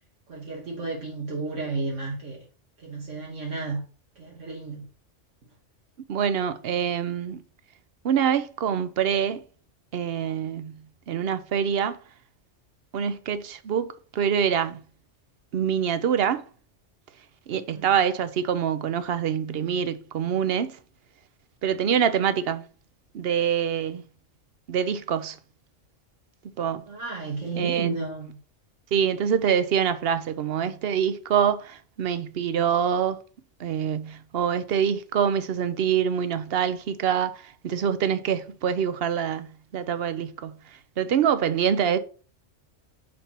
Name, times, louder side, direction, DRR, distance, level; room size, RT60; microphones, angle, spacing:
voice 1, 0.3-2.4 2.8-3.8 4.2-4.9 17.5-17.9 26.9-28.4, right 3 dB, 75° right, 1.7 m, -33 dB
voice 2, 6.1-7.4 8.0-9.4 9.9-10.7 11.1-12.0 12.9-14.8 15.5-16.4 17.5-20.8 21.6-22.6 23.1-24.0 24.7-25.4 26.6-26.8 27.6-27.9 28.9-33.2 33.6-37.3 37.6-39.5 39.7-40.5 41.0-42.0, right 8 dB, 60° right, 0.8 m, -25 dB
5.2 x 4.3 x 5.7 m
omnidirectional pair, 1.3 m